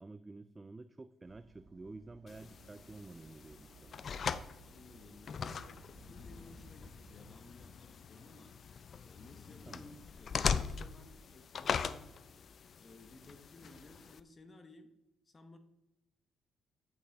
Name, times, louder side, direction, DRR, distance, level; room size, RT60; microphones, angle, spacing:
voice 1, 0.0-4.0 9.7-10.0, right 3 dB, 20° right, 11 dB, 0.4 m, -51 dB
sound 1, 1.2-7.4, right 4 dB, 55° right, 1.1 m, -60 dB
sound 2, 2.3-14.2, left 6 dB, 50° left, 0.4 m, -41 dB
voice 2, 4.6-5.8 6.1-8.5 9.0-12.2 12.8-14.9 15.2-15.6, left 2 dB, 30° left, 8 dB, 1.0 m, -57 dB
8.7 x 5.5 x 3.9 m, 0.89 s
cardioid pair, 90°, 0 cm